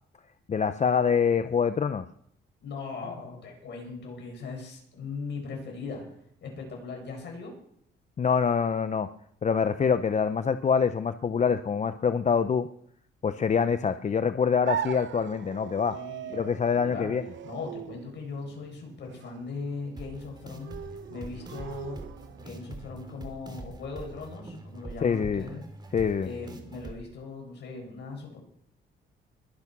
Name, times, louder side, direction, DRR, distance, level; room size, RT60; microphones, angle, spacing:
voice 1, 0.5-2.1 8.2-9.1 9.4-12.7 13.2-16.0 16.3-17.2 25.0-25.4 25.9-26.3, left 6 dB, 35° left, 11 dB, 0.7 m, -25 dB
voice 2, 2.6-6.2 6.4-7.5 15.9-17.1 17.4-20.8 21.1-25.6 26.2-28.4, left 4 dB, 60° left, 1 dB, 7.8 m, -39 dB
sound 1, 14.6-22.6, right 9 dB, 70° right, 0.9 m, -40 dB
sound 2, 20.0-27.0, right 2 dB, 20° right, 2.6 m, -44 dB
21.5 x 8.3 x 6.1 m, 0.68 s
cardioid pair, 90°, 20 cm